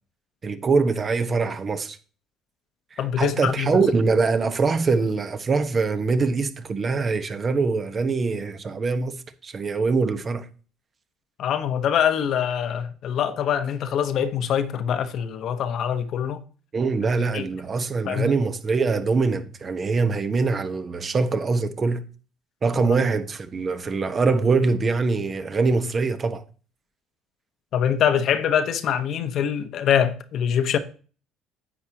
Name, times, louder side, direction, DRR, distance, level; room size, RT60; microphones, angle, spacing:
voice 1, 0.4-2.0 2.9-9.1 9.4-10.4 16.7-22.0 22.6-26.4, right 4 dB, 35° right, 1.1 m, -23 dB
voice 2, 3.0-3.7 11.4-16.4 17.3-17.5 18.1-18.4 22.8-23.0 27.7-30.8, left 8 dB, 55° left, 1.0 m, -24 dB
10.0 x 8.1 x 2.9 m
hypercardioid pair, 60°, 0 cm